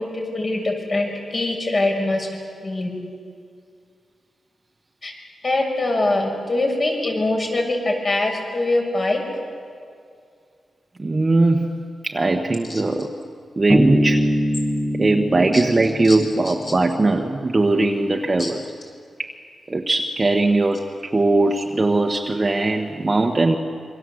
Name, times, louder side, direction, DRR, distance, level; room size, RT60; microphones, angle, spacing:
voice 1, 0.0-2.3 2.6-2.9 5.0-5.1 5.4-9.2 12.7-12.8 15.5-15.6 16.0-16.2 18.4-18.5, left 2 dB, 40° left, 1 dB, 7.1 m, -23 dB
voice 2, 11.0-11.8 12.0-13.1 13.6-14.2 15.0-18.6 19.2-19.3 19.7-23.6, right 2 dB, 25° right, 1 dB, 1.5 m, -20 dB
Bass guitar, 13.7-17.1, equal, 5° left, 1.5 m, -23 dB
27.5 x 25.0 x 8.0 m, 2.3 s
wide cardioid pair, 115°, 0 cm